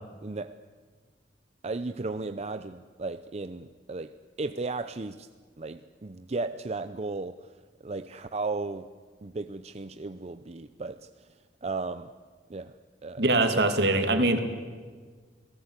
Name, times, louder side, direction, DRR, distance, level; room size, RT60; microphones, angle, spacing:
voice 1, 0.2-0.6 1.6-4.1 4.4-5.3 5.6-7.5 7.8-8.9 9.2-11.3 11.6-12.1 12.5-12.7 13.0-13.6, right 3 dB, 40° right, 10 dB, 0.6 m, -35 dB
voice 2, 13.2-14.5, right 2 dB, 70° right, 7 dB, 2.5 m, -23 dB
28.0 x 17.5 x 8.2 m, 1.5 s
head